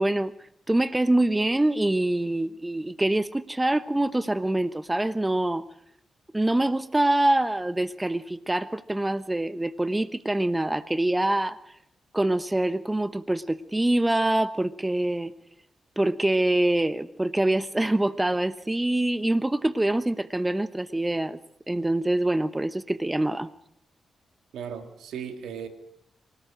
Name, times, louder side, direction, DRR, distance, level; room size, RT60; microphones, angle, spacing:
voice 1, 0.0-5.7 6.3-11.8 12.1-15.3 16.0-21.4 21.7-23.5, right 1 dB, 15° right, 14 dB, 1.0 m, -25 dB
voice 2, 24.5-25.7, right 7 dB, 80° right, 7 dB, 2.4 m, -36 dB
25.0 x 18.0 x 6.4 m, 0.74 s
supercardioid pair, 45°, 0 cm